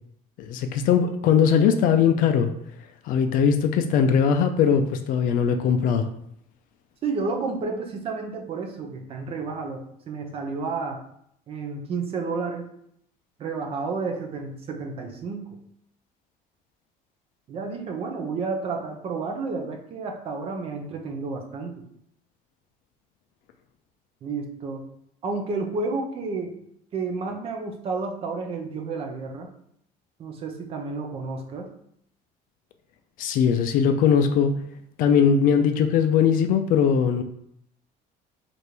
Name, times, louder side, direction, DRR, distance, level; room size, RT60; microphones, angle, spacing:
voice 1, 0.4-2.5 3.1-6.0 33.2-34.6 35.0-37.2, left 7 dB, 60° left, 7 dB, 0.4 m, -20 dB
voice 2, 7.0-11.0 11.5-12.7 13.4-15.6 17.5-21.8 24.2-24.8 25.2-26.5 26.9-29.5 30.2-31.7, right 4 dB, 35° right, 3 dB, 0.6 m, -31 dB
3.3 x 2.5 x 4.3 m, 0.71 s
cardioid pair, 155°, 16 cm